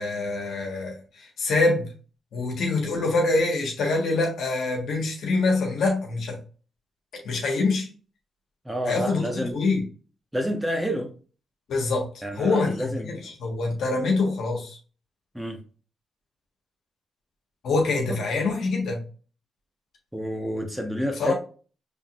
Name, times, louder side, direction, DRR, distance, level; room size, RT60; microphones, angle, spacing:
voice 1, 0.0-1.9 2.3-6.4 7.2-7.9 8.9-9.8 11.7-12.1 12.3-14.8 17.6-19.0 21.2-21.3, left 3 dB, 70° left, 1.6 m, -25 dB
voice 2, 8.6-9.6 10.3-11.1 12.2-13.3 15.3-15.6 18.1-18.2 20.1-21.3, equal, 10° right, 1.3 m, -29 dB
5.6 x 3.6 x 2.6 m
hypercardioid pair, 45°, 0 cm